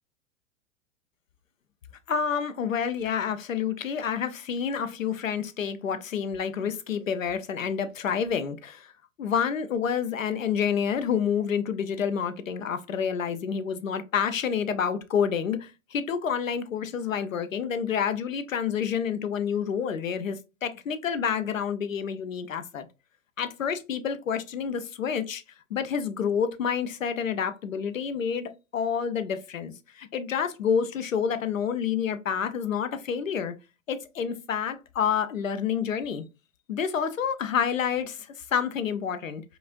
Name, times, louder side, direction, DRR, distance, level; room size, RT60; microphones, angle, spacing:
voice 1, 2.1-8.9 9.2-22.9 23.4-25.4 25.7-33.5 33.9-36.2 36.7-39.4, left 7 dB, 85° left, 0.7 m, -28 dB
4.8 x 2.5 x 2.5 m
figure-of-eight pair, 100°, 38 cm